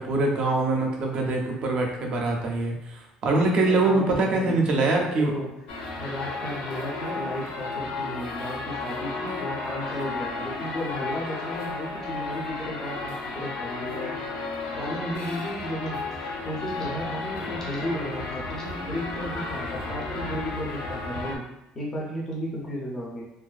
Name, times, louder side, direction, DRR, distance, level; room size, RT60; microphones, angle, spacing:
voice 1, 0.0-5.3, right 2 dB, 40° right, 0 dB, 0.5 m, -24 dB
voice 2, 3.5-5.5 6.0-14.1 14.7-21.4 21.7-23.3, equal, 15° left, -4 dB, 0.5 m, -34 dB
sound 1, 5.7-21.4, left 3 dB, 75° left, 0.5 m, -33 dB
2.5 x 2.3 x 2.4 m, 0.93 s
cardioid pair, 165°, 3 cm